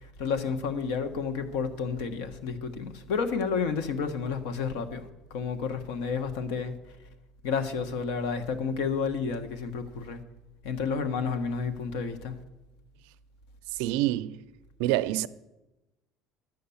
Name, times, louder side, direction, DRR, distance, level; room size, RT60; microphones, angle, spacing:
voice 1, 0.0-6.7 7.4-10.2 10.6-12.4, left 5 dB, 80° left, 1.2 m, -31 dB
voice 2, 13.8-14.4 14.8-15.3, right 15 dB, 80° right, 0.4 m, -26 dB
11.0 x 8.0 x 7.1 m
cardioid pair, 165°, 0 cm